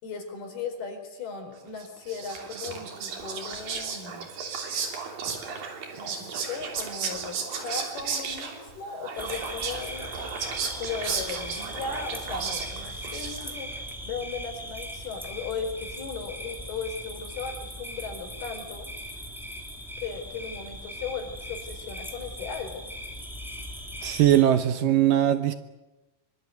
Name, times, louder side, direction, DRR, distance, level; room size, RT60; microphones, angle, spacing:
voice 1, 0.0-4.3 6.0-10.1 10.8-18.9 20.0-22.9, left 5 dB, 55° left, 5 dB, 6.3 m, -37 dB
Whispering, 1.8-13.7, right 5 dB, 50° right, 4.6 m, -34 dB
sound 1, 9.2-24.4, equal, ahead, 3.0 m, -39 dB
voice 2, 24.0-25.5, right 11 dB, 75° right, 10 dB, 2.1 m, -20 dB
24.5 x 24.0 x 9.5 m, 1.0 s
omnidirectional pair, 5.4 m